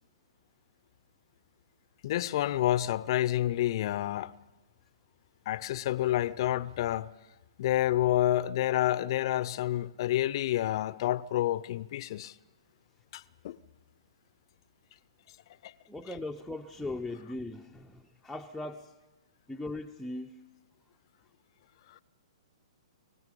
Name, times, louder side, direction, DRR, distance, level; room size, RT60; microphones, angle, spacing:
voice 1, 2.0-4.3 5.5-7.1 7.6-12.3 13.1-13.6 15.6-15.7, left 13 dB, 50° left, 0.6 m, -29 dB
voice 2, 15.9-19.0 19.5-20.4, left 2 dB, ahead, 0.7 m, -39 dB
24.5 x 16.0 x 8.5 m
hypercardioid pair, 130°, 3 cm